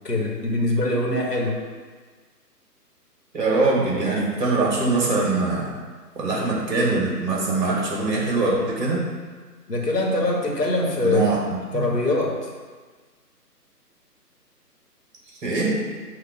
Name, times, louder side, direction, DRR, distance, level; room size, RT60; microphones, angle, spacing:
voice 1, 0.0-1.6 9.7-11.3 11.7-12.5, left 2 dB, 75° left, -2 dB, 1.9 m, -23 dB
voice 2, 3.3-5.7 6.2-9.0 11.0-11.4 11.7-11.8 15.4-15.8, right 3 dB, 30° right, -4 dB, 1.9 m, -22 dB
8.0 x 2.9 x 6.1 m, 1.5 s
figure-of-eight pair, 140°, 48 cm